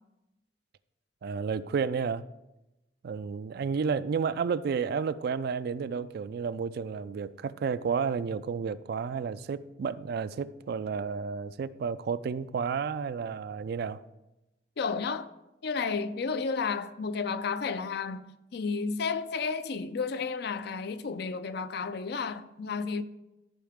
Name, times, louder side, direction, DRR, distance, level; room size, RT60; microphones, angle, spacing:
voice 1, 1.2-2.3 3.0-14.0, right 6 dB, 60° right, 0.3 m, -31 dB
voice 2, 14.8-15.3 15.6-23.0, left 5 dB, 65° left, 0.4 m, -32 dB
13.5 x 4.7 x 3.6 m
head